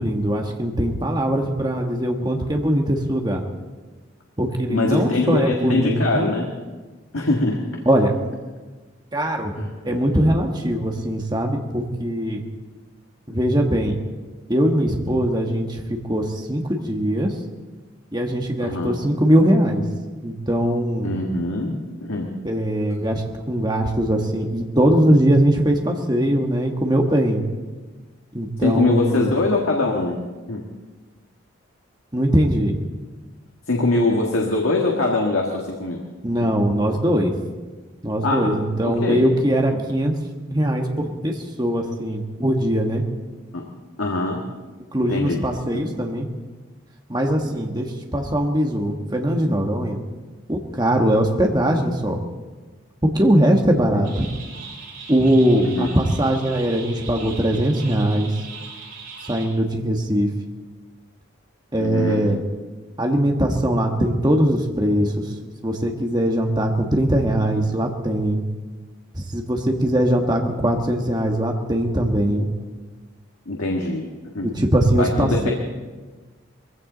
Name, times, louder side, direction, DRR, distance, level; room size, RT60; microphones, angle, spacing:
voice 1, 0.0-3.4 4.4-6.3 7.8-8.1 9.1-9.6 9.9-12.4 13.3-14.0 14.5-17.3 18.1-19.8 20.2-21.2 22.4-27.4 28.3-29.3 32.1-32.8 36.2-37.3 38.0-40.1 40.5-43.0 44.9-46.3 47.1-50.0 50.5-52.2 53.0-54.3 55.1-58.3 59.3-60.3 61.7-62.4 63.0-65.2 65.6-68.4 69.1-72.5 74.4-75.5, right 1 dB, 20° right, 2 dB, 1.4 m, -21 dB
voice 2, 4.7-6.5 7.1-7.8 9.5-10.0 18.6-18.9 21.0-22.4 28.6-30.2 30.5-30.7 33.7-36.0 36.4-36.6 38.2-38.5 38.8-39.2 39.7-39.8 43.5-43.7 44.0-44.4 45.1-45.4 55.6-55.9 61.8-62.2 73.4-74.1 74.3-74.5 75.0-75.5, left 2 dB, 90° left, 0 dB, 1.7 m, -23 dB
sound 1, 54.0-59.5, right 5 dB, 85° right, 6.5 m, -39 dB
21.0 x 16.0 x 4.0 m, 1.3 s
head